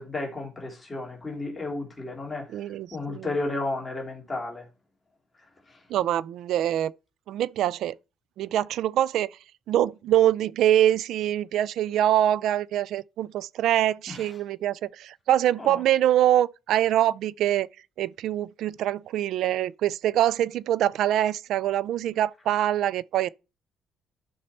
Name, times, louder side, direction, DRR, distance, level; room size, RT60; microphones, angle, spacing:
voice 1, 0.0-2.6 2.9-4.6 14.1-14.3 15.6-15.8, left 2 dB, 15° left, 3.0 m, -33 dB
voice 2, 2.5-3.3 5.9-6.9 7.3-7.9 8.4-9.3 9.7-17.7 18.0-23.3, right 12 dB, 75° right, 0.4 m, -24 dB
11.5 x 5.5 x 4.3 m
cardioid pair, 125°, 0 cm